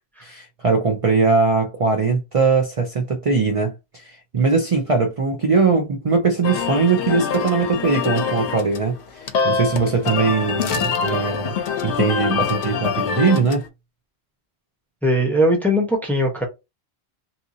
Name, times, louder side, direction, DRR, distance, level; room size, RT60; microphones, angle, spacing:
voice 1, 0.2-11.5 11.8-13.6, right 4 dB, 40° right, 0.6 m, -20 dB
sound 1, 6.4-13.7, left 6 dB, 90° left, 0.9 m, -25 dB
sound 2, 10.6-11.2 11.5-11.6, left 7 dB, 60° left, 0.7 m, -33 dB
voice 2, 15.0-16.4, equal, ahead, 0.8 m, -19 dB
2.8 x 2.6 x 2.6 m
omnidirectional pair, 1.1 m